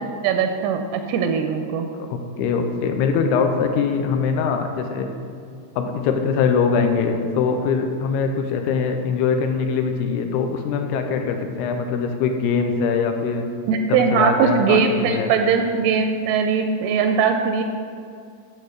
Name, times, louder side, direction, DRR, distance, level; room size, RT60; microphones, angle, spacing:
voice 1, 0.2-1.9 13.7-17.6, right 6 dB, 85° right, 6 dB, 2.6 m, -20 dB
voice 2, 2.1-5.1 5.8-13.4 13.9-15.3, left 5 dB, 90° left, 5 dB, 2.7 m, -22 dB
10.5 x 4.4 x 6.5 m, 2.3 s
omnidirectional pair, 4.6 m